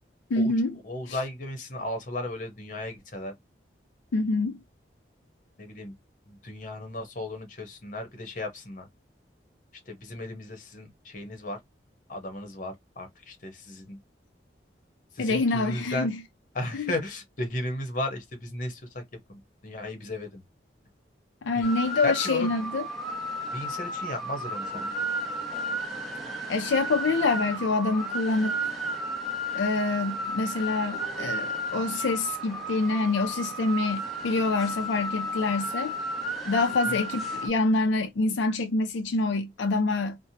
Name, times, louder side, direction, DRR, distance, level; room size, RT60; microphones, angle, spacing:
voice 1, 0.3-0.8 1.1-1.2 4.1-4.6 15.2-16.2 16.7-16.9 21.4-22.8 26.5-28.7 29.5-35.9 36.5-40.2, left 3 dB, 85° left, 0.4 m, -26 dB
voice 2, 0.8-3.3 5.6-5.9 6.3-8.9 9.9-11.6 12.1-14.0 15.1-16.1 16.5-19.0 19.3-20.4 21.5-21.7 22.0-22.5 23.5-24.9 36.9-37.0, left 1 dB, 45° left, 0.9 m, -35 dB
sound 1, 21.6-37.5, right 1 dB, ahead, 0.8 m, -33 dB
2.9 x 2.1 x 2.7 m
head